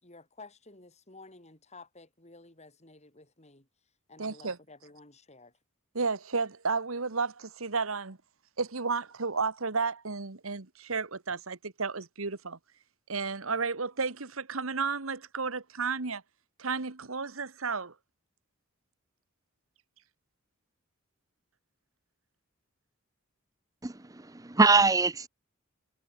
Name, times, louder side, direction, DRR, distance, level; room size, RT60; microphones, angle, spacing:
voice 1, 0.0-3.7 4.1-5.5, left 3 dB, 35° left, 6.7 m, -52 dB
voice 2, 4.2-4.6 6.0-8.2 8.6-12.6 13.1-16.2 16.6-17.9, right 4 dB, 80° right, 1.6 m, -32 dB
voice 3, 23.8-25.3, right 3 dB, 15° right, 0.7 m, -23 dB
head